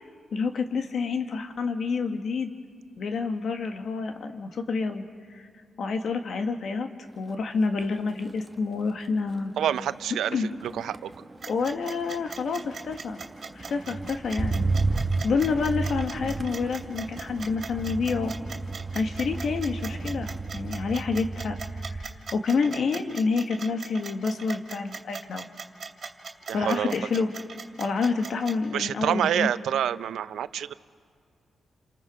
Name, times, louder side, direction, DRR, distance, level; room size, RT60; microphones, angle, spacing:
voice 1, 0.3-2.5 3.0-5.0 5.3-5.5 5.8-6.9 7.2-9.5 10.3-10.5 11.5-13.2 13.5-14.7 15.2-18.3 18.9-25.5 26.5-27.3 27.8-29.5, left 4 dB, 70° left, 5 dB, 1.7 m, -28 dB
Motor vehicle (road), 7.1-7.5 7.8-22.3 22.6-23.1, right 3 dB, 25° right, 1.1 m, -33 dB
voice 2, 9.6-11.1 26.5-26.9 28.7-30.7, right 10 dB, 90° right, 14 dB, 0.5 m, -27 dB
sound 1, 11.4-28.5, right 5 dB, 55° right, 2.8 m, -39 dB
29.0 x 27.0 x 5.0 m, 2.1 s
cardioid pair, 80°, 0 cm